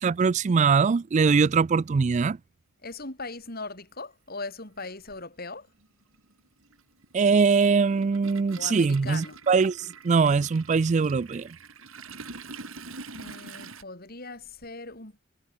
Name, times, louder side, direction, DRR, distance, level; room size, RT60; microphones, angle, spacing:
voice 1, 0.0-2.4 7.1-11.5, right 5 dB, 35° right, 0.3 m, -22 dB
voice 2, 2.8-5.7 8.5-9.4 13.2-15.2, left 3 dB, 45° left, 6.0 m, -39 dB
Toilet flush, 3.3-3.4 4.7-4.9 5.2-13.8, right 4 dB, 75° right, 5.9 m, -45 dB
head